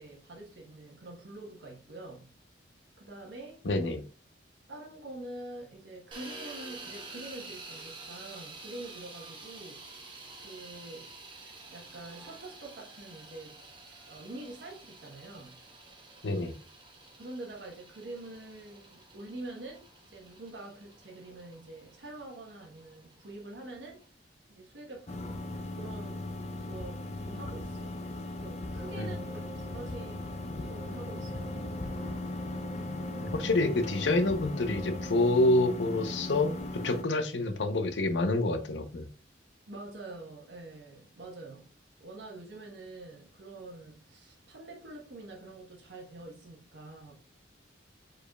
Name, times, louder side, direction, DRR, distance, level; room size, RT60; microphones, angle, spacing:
voice 1, 0.0-2.3 3.0-3.6 4.7-9.9 10.4-11.1 11.4-11.5 11.7-13.7 14.1-15.6 17.2-24.0 24.5-26.3 26.6-28.0 28.3-30.3 30.6-31.5 39.7-41.7 42.0-47.1, right 2 dB, 80° right, 1.2 m, -46 dB
voice 2, 3.6-4.0 16.2-16.6 29.0-29.1 33.2-36.5 36.8-39.1, left 2 dB, 75° left, 0.7 m, -27 dB
sound 1, 6.1-24.0, right 3 dB, 25° right, 1.1 m, -49 dB
sound 2, 25.1-37.0, left 2 dB, 35° left, 0.5 m, -38 dB
sound 3, 28.8-35.3, right 2 dB, 10° right, 1.7 m, -48 dB
4.9 x 4.6 x 2.3 m
head